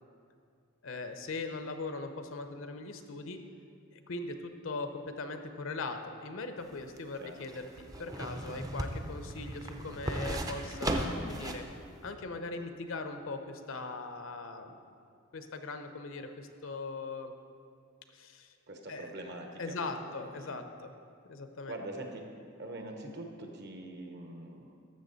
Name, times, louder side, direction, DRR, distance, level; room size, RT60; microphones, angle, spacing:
voice 1, 0.8-3.4 3.9-11.6 12.0-14.8 15.3-17.3 18.1-18.5 18.9-19.1 19.6-20.9 21.3-21.7, left 3 dB, 65° left, 7 dB, 0.7 m, -40 dB
sound 1, 6.6-11.7 12.1-12.2, right 1 dB, 15° right, 0.5 m, -36 dB
voice 2, 18.7-20.6 21.7-22.3 22.6-24.8, right 1 dB, 55° right, 3 dB, 1.1 m, -44 dB
13.0 x 6.9 x 4.0 m, 2.3 s
head